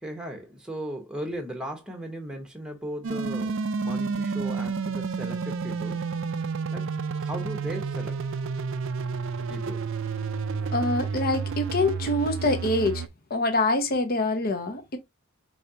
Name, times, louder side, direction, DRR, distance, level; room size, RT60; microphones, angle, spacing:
voice 1, 0.0-6.0 6.7-8.2 9.5-9.8, right 1 dB, 5° right, 1.0 m, -37 dB
sound 1, 3.0-13.1, right 5 dB, 60° right, 0.5 m, -30 dB
voice 2, 10.7-13.0 13.3-15.0, left 2 dB, 40° left, 0.9 m, -25 dB
5.2 x 3.5 x 2.7 m
head